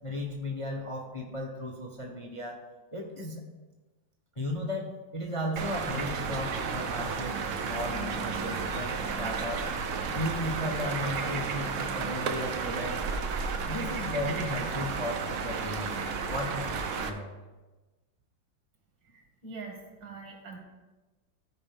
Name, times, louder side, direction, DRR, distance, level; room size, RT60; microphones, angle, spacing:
voice 1, 0.0-2.6 2.9-3.4 4.4-9.7 10.1-13.0 13.6-17.3, left 1 dB, 25° left, 0 dB, 0.8 m, -35 dB
sound 1, 5.6-17.1, right 5 dB, 60° right, 0.8 m, -32 dB
voice 2, 19.1-19.7 20.0-20.6, right 4 dB, 80° right, 0 dB, 2.7 m, -43 dB
14.0 x 5.1 x 3.6 m, 1.2 s
omnidirectional pair, 2.0 m